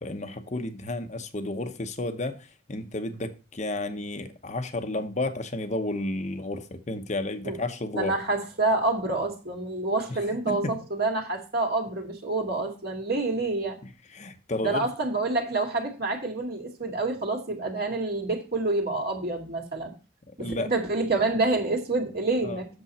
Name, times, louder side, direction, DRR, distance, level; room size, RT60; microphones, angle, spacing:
voice 1, 0.0-8.1 10.1-10.8 13.8-14.9 20.4-20.7 22.4-22.6, left 2 dB, 35° left, 0.9 m, -32 dB
voice 2, 7.9-13.8 14.6-19.9 20.4-22.7, right 2 dB, 50° right, 2.3 m, -27 dB
8.4 x 7.1 x 4.3 m
head